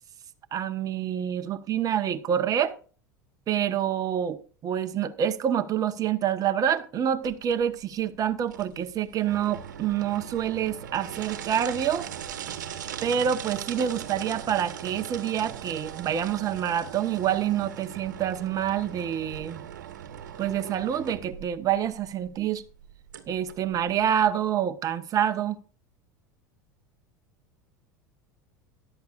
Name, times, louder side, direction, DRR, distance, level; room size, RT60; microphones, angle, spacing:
voice 1, 0.5-2.8 3.5-12.1 13.0-19.6 20.4-22.6 23.3-25.6, right 9 dB, 40° right, 1.1 m, -27 dB
sound 1, 7.2-24.3, right 9 dB, 80° right, 1.3 m, -40 dB
14.0 x 11.0 x 2.5 m
hypercardioid pair, 85°, 10 cm